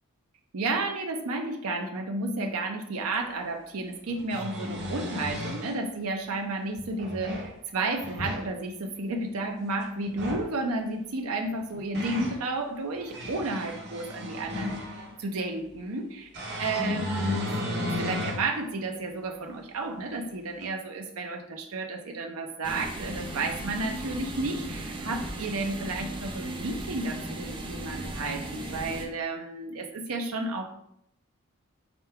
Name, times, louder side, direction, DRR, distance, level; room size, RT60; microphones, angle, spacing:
voice 1, 0.5-14.8 15.2-16.2 16.6-17.5 17.9-30.7, right 2 dB, 75° right, 3 dB, 0.6 m, -32 dB
sound 1, 3.1-3.2 4.1-5.7 6.8-7.5 8.0-8.5 10.0-10.5 11.5-12.4 12.9-15.1 16.3-18.5 19.0-19.1 20.6-20.7, left 1 dB, 50° right, 1.2 m, -33 dB
sound 2, 22.6-29.1, right 1 dB, 20° right, 0.4 m, -37 dB
5.1 x 2.2 x 4.5 m, 0.73 s
head